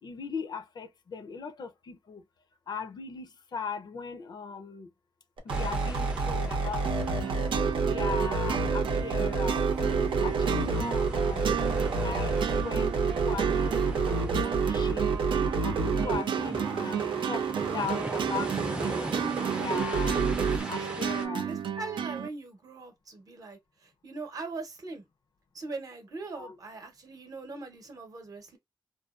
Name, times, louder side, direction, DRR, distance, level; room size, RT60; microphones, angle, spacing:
voice 1, 0.0-2.2 2.7-4.9 5.4-7.4 7.8-11.5 11.9-15.2 15.6-17.5 17.7-19.0 19.6-20.2 20.7-21.5 26.3-26.6, left 5 dB, 55° left, 0.5 m, -39 dB
sound 1, 5.4-20.6, right 4 dB, 85° right, 0.7 m, -28 dB
sound 2, 5.5-21.3, right 1 dB, 10° right, 0.5 m, -41 dB
sound 3, 6.8-22.3, right 8 dB, 70° right, 0.3 m, -34 dB
voice 2, 19.2-19.5 20.6-20.9 21.5-25.0 25.5-28.6, right 3 dB, 45° right, 0.8 m, -41 dB
2.5 x 2.2 x 2.3 m
wide cardioid pair, 155°, 9 cm